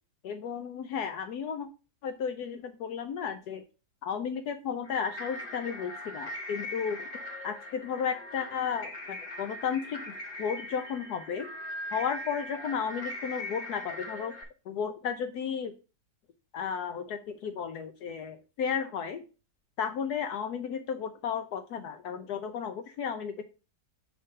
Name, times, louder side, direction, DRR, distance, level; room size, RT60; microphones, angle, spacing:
voice 1, 0.2-1.7 2.0-3.6 4.0-7.1 7.4-10.1 10.4-11.5 11.9-14.3 14.7-15.7 16.5-19.2 19.8-23.4, left 7 dB, 75° left, 8 dB, 1.2 m, -33 dB
sound 1, 4.8-14.4, left 1 dB, 35° left, 1.2 m, -40 dB
5.3 x 3.8 x 5.3 m, 0.31 s
omnidirectional pair, 1.8 m